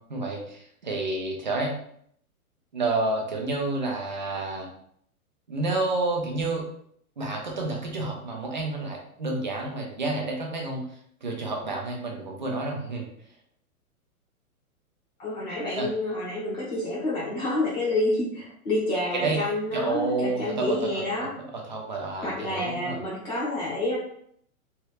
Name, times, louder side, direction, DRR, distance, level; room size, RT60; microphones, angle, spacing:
voice 1, 0.1-1.7 2.7-4.7 5.5-6.7 7.2-10.9 11.2-13.1 15.7-15.9 19.2-19.4 19.7-20.8 21.5-23.0, right 2 dB, 35° right, 0 dB, 0.4 m, -29 dB
voice 2, 15.2-21.3 22.2-24.0, left 1 dB, 30° left, -7 dB, 1.2 m, -28 dB
3.2 x 2.9 x 2.3 m, 0.67 s
hypercardioid pair, 175°, 44 cm